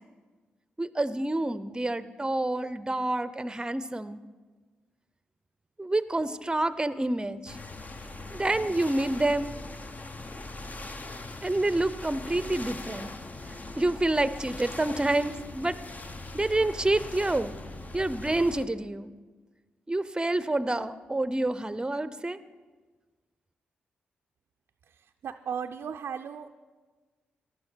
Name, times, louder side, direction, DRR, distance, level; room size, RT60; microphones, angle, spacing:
voice 1, 0.8-4.2 5.8-7.6 8.3-9.5 11.4-13.1 13.8-15.8 16.3-17.6 17.9-19.1 19.9-22.4, right 2 dB, 20° right, 15 dB, 0.7 m, -28 dB
sound 1, 7.5-18.7, left 2 dB, 35° left, 1.0 m, -41 dB
voice 2, 24.8-26.5, right 7 dB, 65° right, 5 dB, 0.5 m, -36 dB
15.0 x 11.5 x 4.6 m, 1.4 s
hypercardioid pair, 40°, 4 cm